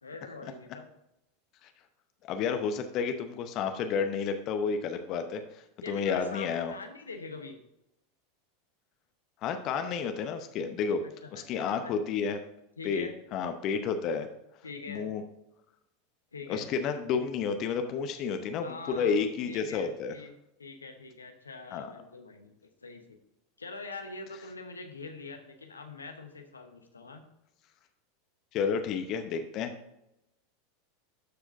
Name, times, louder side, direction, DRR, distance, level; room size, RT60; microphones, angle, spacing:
voice 1, 0.0-0.8 5.8-7.6 11.0-11.4 11.8-11.9 12.8-13.1 14.6-15.1 16.3-16.7 18.6-19.2 19.4-20.3 20.6-23.2 23.6-27.2, left 3 dB, 80° left, 5 dB, 0.9 m, -44 dB
voice 2, 2.3-6.7 9.4-11.0 11.3-12.4 12.8-14.3 14.9-15.2 16.5-20.1 21.7-21.9 28.5-29.7, left 6 dB, 40° left, 7 dB, 0.8 m, -31 dB
13.0 x 4.8 x 2.6 m, 0.84 s
figure-of-eight pair, 85°, 0 cm